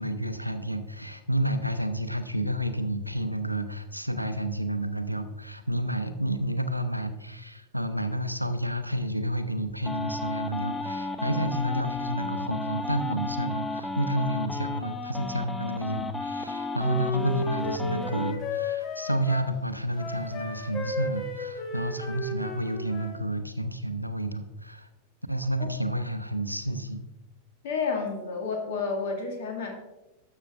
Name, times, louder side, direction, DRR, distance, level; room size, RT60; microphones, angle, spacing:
voice 1, 0.0-24.9 25.3-27.0, right 1 dB, 90° right, 9 dB, 0.6 m, -30 dB
sound 1, 9.8-18.3, left 3 dB, 10° left, 0.6 m, -33 dB
Wind instrument woodwind instrument, 16.4-19.5 19.9-23.2, left 3 dB, 30° left, 1.3 m, -35 dB
voice 2, 27.6-29.7, left 4 dB, 55° left, 2 dB, 1.9 m, -30 dB
12.5 x 6.6 x 2.5 m, 0.98 s
figure-of-eight pair, 90°, 0 cm